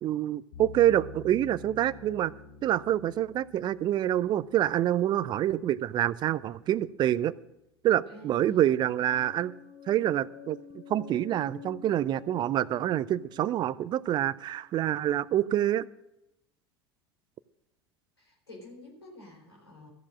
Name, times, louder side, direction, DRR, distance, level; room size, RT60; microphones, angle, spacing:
voice 1, 0.0-2.3 2.6-7.3 7.8-9.5 9.9-10.6 10.9-15.8, right 12 dB, 35° right, 19 dB, 0.5 m, -26 dB
sound 1, 0.5-5.6, left 3 dB, 60° left, 2.7 m, -48 dB
voice 2, 8.1-8.8 18.2-19.9, left 1 dB, 80° left, -1 dB, 4.1 m, -48 dB
sound 2, 9.1-14.9, left 8 dB, 40° left, 2.2 m, -49 dB
14.0 x 7.3 x 7.5 m, 0.87 s
figure-of-eight pair, 75°, 13 cm